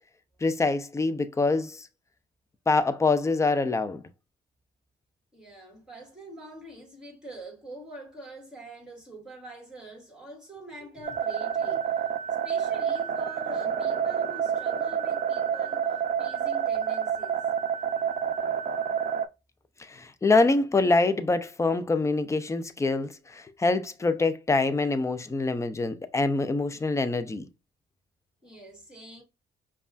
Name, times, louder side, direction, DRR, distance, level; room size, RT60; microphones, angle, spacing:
voice 1, 0.4-1.9 2.7-4.0 19.8-27.5, left 3 dB, 15° left, 0.5 m, -25 dB
voice 2, 5.3-11.9 12.4-17.5 28.4-29.2, right 2 dB, 5° right, 1.9 m, -45 dB
sound 1, 11.0-19.3, right 8 dB, 40° right, 0.5 m, -28 dB
5.2 x 2.4 x 2.4 m
cardioid pair, 90°, 20 cm